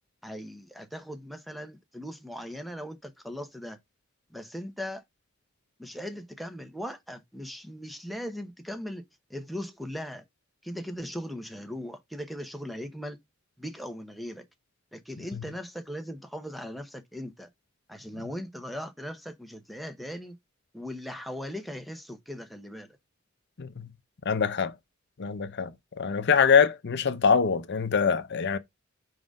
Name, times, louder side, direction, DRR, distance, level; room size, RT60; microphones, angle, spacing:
voice 1, 0.2-3.8 4.3-5.0 5.8-9.0 9.3-10.2 10.6-13.2 13.6-14.4 14.9-17.5 17.9-20.4 20.7-22.9, equal, ahead, 0.8 m, -39 dB
voice 2, 24.3-24.8 25.2-25.7 26.0-28.6, left 6 dB, 55° left, 0.6 m, -24 dB
4.9 x 3.9 x 5.1 m
head